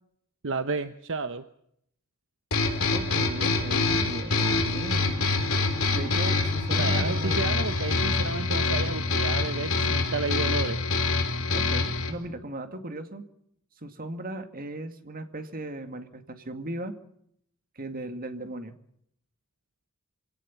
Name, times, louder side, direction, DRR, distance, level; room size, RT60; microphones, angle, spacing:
voice 1, 0.4-1.4 6.8-10.8, right 4 dB, 60° right, 10 dB, 1.0 m, -31 dB
sound 1, 2.5-12.1, left 3 dB, 70° left, 4.2 m, -26 dB
voice 2, 2.9-5.4 5.9-7.4 9.8-9.9 11.5-13.2 13.8-17.0 17.8-18.7, right 1 dB, 40° right, 7 dB, 2.2 m, -37 dB
26.0 x 17.5 x 7.3 m, 0.72 s
head